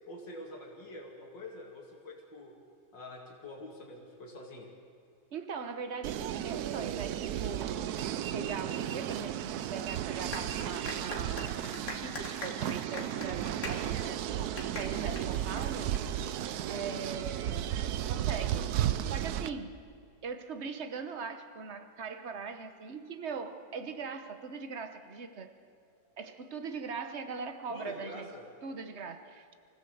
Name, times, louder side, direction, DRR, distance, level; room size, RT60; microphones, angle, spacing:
voice 1, 0.1-2.5 2.9-4.7 27.7-28.4, left 1 dB, 80° left, -1 dB, 3.2 m, -46 dB
voice 2, 5.3-14.2 14.6-16.0 16.7-17.7 18.0-18.8 19.0-19.7 20.2-25.5 26.2-28.3 28.6-29.5, right 5 dB, 40° right, 8 dB, 1.3 m, -41 dB
sound 1, 6.0-19.5, right 11 dB, 65° right, 1.1 m, -34 dB
sound 2, 10.3-16.3, left 2 dB, 50° left, 2.7 m, -43 dB
25.0 x 16.0 x 8.0 m, 2.3 s
omnidirectional pair, 2.0 m